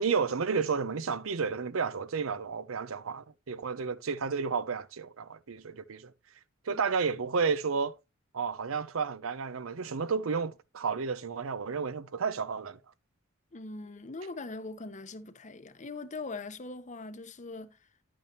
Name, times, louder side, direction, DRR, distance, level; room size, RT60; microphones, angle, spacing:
voice 1, 0.0-6.1 6.7-8.0 8.3-12.8, right 5 dB, 85° right, 0.6 m, -31 dB
voice 2, 13.5-17.8, left 3 dB, 35° left, 0.9 m, -41 dB
10.5 x 8.7 x 2.9 m
head